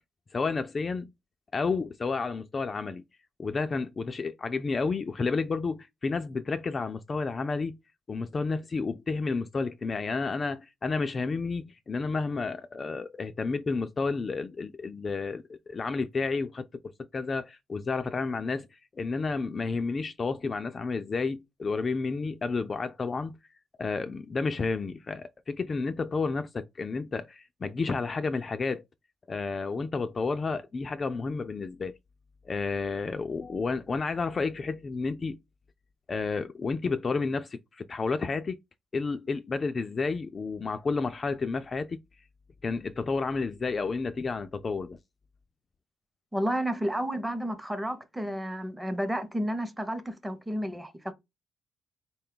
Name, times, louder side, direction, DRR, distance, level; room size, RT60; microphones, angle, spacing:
voice 1, 0.3-1.1 1.5-3.0 3.4-7.8 8.1-18.7 18.9-23.3 23.8-28.8 29.3-32.0 32.5-35.4 36.1-38.6 38.9-42.0 42.6-45.0, left 4 dB, 35° left, 0.3 m, -31 dB
voice 2, 46.3-51.1, equal, 10° right, 0.6 m, -31 dB
3.8 x 2.3 x 3.7 m
cardioid pair, 90°, 0 cm